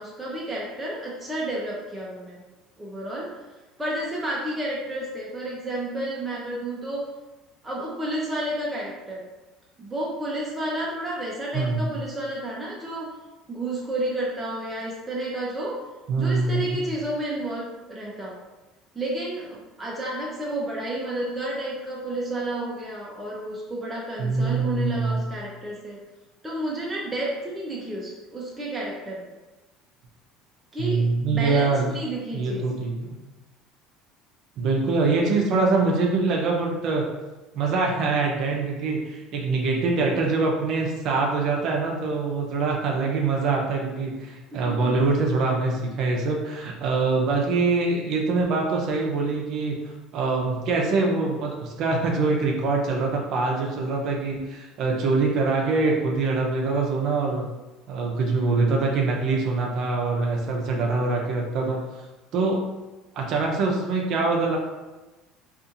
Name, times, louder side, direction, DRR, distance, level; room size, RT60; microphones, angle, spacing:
voice 1, 0.0-2.4 2.8-3.3 3.8-7.1 7.6-9.2 9.8-13.1 13.5-15.8 16.2-18.4 18.9-26.0 26.4-29.3 30.7-31.0 31.3-32.6 44.5-45.0, right 1 dB, 15° right, -4 dB, 0.6 m, -31 dB
voice 2, 11.5-11.9 16.1-16.9 24.2-25.2 30.8-32.0 32.3-33.2 34.6-37.1 37.5-57.5 57.9-62.1 62.3-62.6 63.2-64.6, right 3 dB, 60° right, 0 dB, 0.5 m, -24 dB
2.6 x 2.4 x 2.6 m, 1.1 s
supercardioid pair, 100°, 0 cm